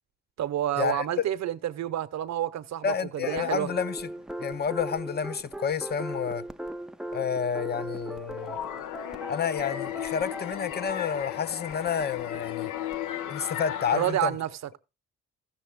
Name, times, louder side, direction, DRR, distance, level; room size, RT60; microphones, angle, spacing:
voice 1, 0.4-3.7 13.9-14.8, right 12 dB, 60° right, 0.9 m, -29 dB
voice 2, 2.8-4.1 4.4-6.4 7.1-8.6 9.3-12.7 13.3-14.4, left 7 dB, 35° left, 0.7 m, -30 dB
sound 1, 3.2-13.0, right 1 dB, ahead, 0.4 m, -39 dB
sound 2, 8.4-14.1, left 12 dB, 85° left, 0.8 m, -35 dB
14.5 x 7.0 x 3.6 m
cardioid pair, 90°, 30 cm